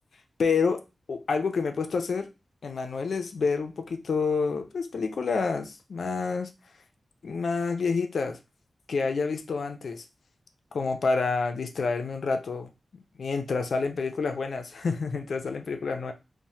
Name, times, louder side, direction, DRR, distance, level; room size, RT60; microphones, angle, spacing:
voice 1, 0.4-0.8 1.1-2.3 2.6-6.5 7.2-8.4 8.9-10.0 10.7-16.1, left 4 dB, 75° left, 0.4 m, -28 dB
3.0 x 2.1 x 2.7 m
wide cardioid pair, 150°, 0 cm